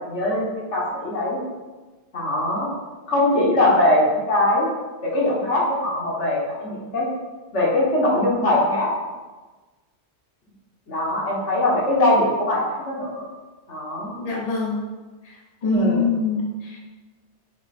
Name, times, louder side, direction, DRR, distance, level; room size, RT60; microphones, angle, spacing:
voice 1, 0.0-1.4 2.1-2.7 3.1-4.7 5.0-7.1 7.5-8.9 10.9-13.2 13.7-14.2 15.6-16.1, left 1 dB, 75° left, -3 dB, 1.7 m, -21 dB
voice 2, 14.2-14.8 15.2-16.8, left 4 dB, 35° left, -2 dB, 1.0 m, -24 dB
7.2 x 3.2 x 4.3 m, 1.3 s
omnidirectional pair, 1.2 m